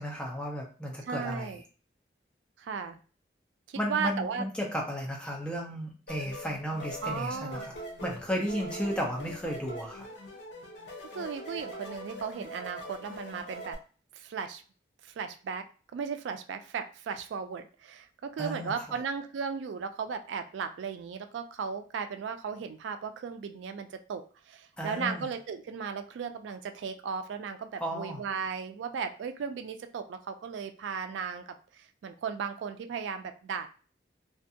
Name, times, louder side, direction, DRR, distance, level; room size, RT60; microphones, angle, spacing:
voice 1, 0.0-1.5 3.7-7.7 8.0-10.1 18.4-18.7 24.8-25.3 27.8-28.2, equal, 5° left, -1 dB, 0.5 m, -34 dB
voice 2, 1.1-1.6 2.6-3.0 3.7-4.4 7.0-7.7 11.2-13.8 14.2-14.6 15.0-15.6 15.9-31.4 32.0-33.7, right 6 dB, 80° right, 8 dB, 0.3 m, -36 dB
sound 1, 6.1-13.8, equal, 75° left, 0.7 m, -42 dB
2.5 x 2.3 x 2.7 m, 0.38 s
head